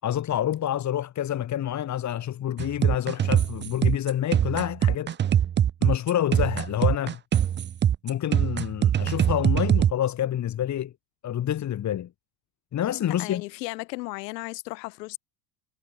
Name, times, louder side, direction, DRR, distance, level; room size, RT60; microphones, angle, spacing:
voice 1, 0.0-5.2 5.8-7.2 8.0-10.9 11.2-12.1 12.7-13.4, left 11 dB, 35° left, 4.8 m, -27 dB
sound 1, 2.6-9.9, right 10 dB, 20° right, 0.8 m, -22 dB
voice 2, 13.2-15.2, left 22 dB, 90° left, 7.3 m, -35 dB
cardioid pair, 145°, 48 cm